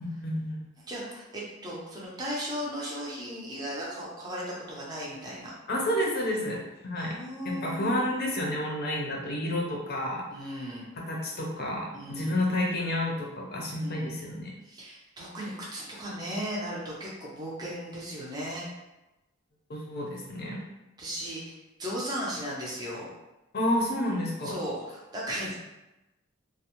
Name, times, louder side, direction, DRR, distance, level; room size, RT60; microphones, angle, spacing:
voice 1, 0.0-0.6 5.7-7.1 7.4-10.2 11.1-14.5 19.7-20.6 23.5-24.6, left 1 dB, 50° left, -1 dB, 0.5 m, -30 dB
voice 2, 0.8-5.5 6.9-8.0 10.3-10.9 11.9-12.4 13.8-14.1 14.6-18.7 21.0-21.5 21.8-23.1 24.4-25.6, equal, 20° right, -5 dB, 0.5 m, -36 dB
2.5 x 2.0 x 2.9 m, 1.0 s
head